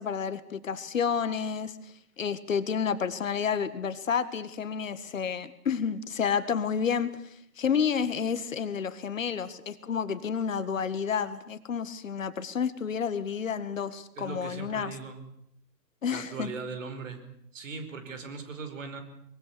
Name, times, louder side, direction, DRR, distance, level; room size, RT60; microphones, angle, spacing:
voice 1, 0.0-14.9 16.0-16.5, left 7 dB, 50° left, 13 dB, 1.8 m, -30 dB
voice 2, 14.2-15.2 16.1-17.2 17.5-19.0, right 4 dB, 50° right, 9 dB, 5.0 m, -39 dB
23.0 x 22.0 x 7.1 m, 0.75 s
figure-of-eight pair, 140°, 49 cm